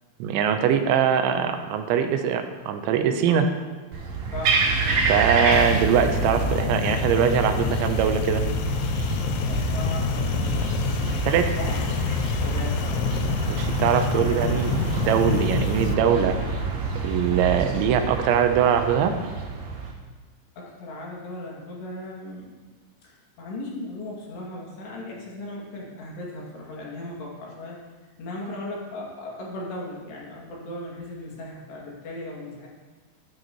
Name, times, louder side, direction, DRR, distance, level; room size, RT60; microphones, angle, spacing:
voice 1, 0.2-3.5 5.1-8.4 10.4-10.6 11.2-11.6 13.5-16.4 17.0-19.2, right 8 dB, 85° right, 7 dB, 3.1 m, -22 dB
sound 1, 3.9-19.9, right 4 dB, 60° right, 2.6 m, -27 dB
sound 2, 5.5-15.9, left 9 dB, 90° left, 3.1 m, -28 dB
voice 2, 9.5-11.3 11.6-11.8 12.4-13.6 14.2-14.9 20.6-22.5 23.0-27.8 28.2-32.7, left 2 dB, 70° left, -4 dB, 4.3 m, -37 dB
12.5 x 12.5 x 3.0 m, 1.3 s
omnidirectional pair, 5.2 m